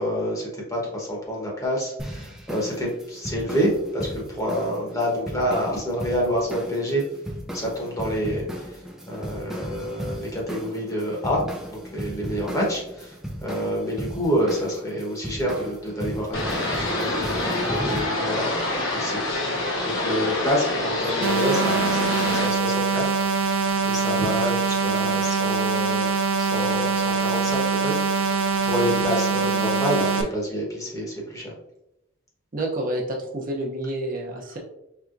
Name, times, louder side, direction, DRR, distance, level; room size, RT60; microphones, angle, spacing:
voice 1, 0.0-7.0 7.5-18.7 18.9-23.5 23.8-31.5, equal, 15° left, -3 dB, 1.0 m, -28 dB
sound 1, 2.0-18.0, equal, ahead, 0.5 m, -36 dB
sound 2, 16.3-22.5, left 2 dB, 75° left, 1.2 m, -26 dB
sound 3, 21.2-30.2, right 5 dB, 80° right, 0.6 m, -23 dB
voice 2, 32.5-34.6, right 1 dB, 40° right, -1 dB, 0.7 m, -29 dB
4.5 x 3.4 x 2.5 m, 0.84 s
head